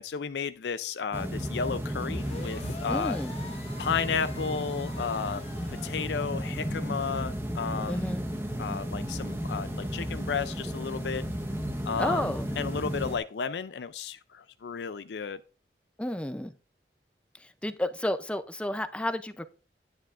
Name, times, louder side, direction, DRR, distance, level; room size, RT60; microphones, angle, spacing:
voice 1, 0.0-3.2 3.8-5.4 5.7-8.1 8.6-11.2 11.8-15.4, left 6 dB, 75° left, 0.4 m, -33 dB
sound 1, 1.1-13.2, equal, 15° right, 1.0 m, -34 dB
sound 2, 2.1-5.9, left 3 dB, 35° left, 1.3 m, -46 dB
voice 2, 2.9-3.4 7.9-8.2 12.0-12.5 16.0-16.5 17.3-19.5, left 1 dB, 5° left, 0.4 m, -31 dB
10.5 x 9.9 x 2.5 m
head